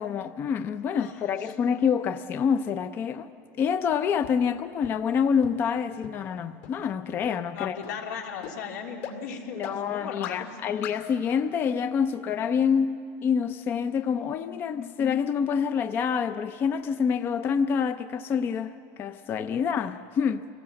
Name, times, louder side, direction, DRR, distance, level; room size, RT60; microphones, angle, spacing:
voice 1, 0.0-3.3 3.6-7.8 9.6-20.5, left 7 dB, 25° left, 0.4 m, -27 dB
voice 2, 0.9-1.5 7.5-10.6 19.5-19.6, left 6 dB, 90° left, 3.2 m, -37 dB
sound 1, 4.2-4.3 4.8-4.9 5.4-5.5 6.0-6.1 6.6-6.7 7.2-7.3 7.8-7.9 8.4-8.5 9.0-9.1 9.6-9.7 10.2-10.3 10.8-10.9, left 12 dB, 60° left, 2.4 m, -38 dB
26.5 x 18.5 x 7.6 m
supercardioid pair, 165°, 9 cm